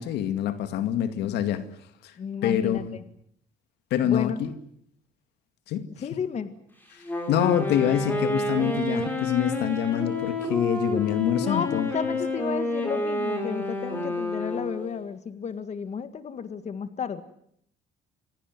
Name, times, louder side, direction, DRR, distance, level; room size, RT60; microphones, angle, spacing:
voice 1, 0.0-1.6 2.0-2.1 2.4-3.0 3.9-4.5 5.7-5.9 7.3-11.9, left 10 dB, 80° left, 10 dB, 2.2 m, -26 dB
voice 2, 2.2-3.0 4.0-4.4 6.0-6.5 11.4-17.2, left 7 dB, 40° left, 11 dB, 1.8 m, -32 dB
Wind instrument woodwind instrument, 7.0-14.9, left 2 dB, 10° left, 7.2 m, -29 dB
26.5 x 17.0 x 9.6 m, 0.69 s
cardioid pair, 110°, 17 cm